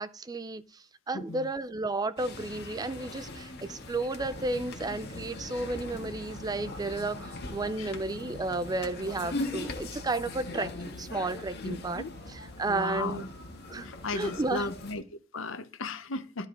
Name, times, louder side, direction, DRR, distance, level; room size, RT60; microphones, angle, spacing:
voice 1, 0.0-12.0 12.3-13.2 13.7-14.7, right 2 dB, 20° right, 0.4 m, -33 dB
voice 2, 1.1-1.5 7.8-7.9 11.6-12.1 12.7-13.3 13.8-16.5, left 3 dB, 85° left, 0.9 m, -36 dB
sound 1, 2.2-15.0, left 2 dB, 55° left, 1.6 m, -40 dB
Boat Water vehicle, 4.2-13.2, right 1 dB, 55° right, 2.4 m, -57 dB
13.0 x 4.9 x 3.8 m
head